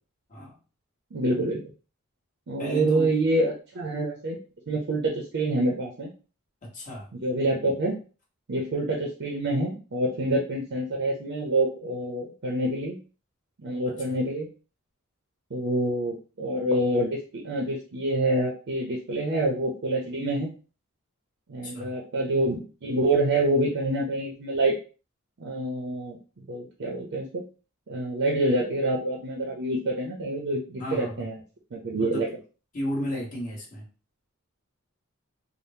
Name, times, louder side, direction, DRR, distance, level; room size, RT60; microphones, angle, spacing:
voice 1, 1.1-1.7 2.5-4.4 4.7-6.1 7.1-8.0 8.5-13.0 13.6-14.5 15.5-20.5 21.5-24.8 25.4-26.2 26.5-27.4 27.9-31.4 31.7-32.3, right 1 dB, 55° right, 0 dB, 0.6 m, -27 dB
voice 2, 2.6-3.1 6.6-7.1 13.9-14.2 21.6-21.9 30.8-31.3 32.0-32.3 32.7-33.9, left 1 dB, 40° left, -4 dB, 1.2 m, -34 dB
3.5 x 2.0 x 2.7 m, 0.36 s
head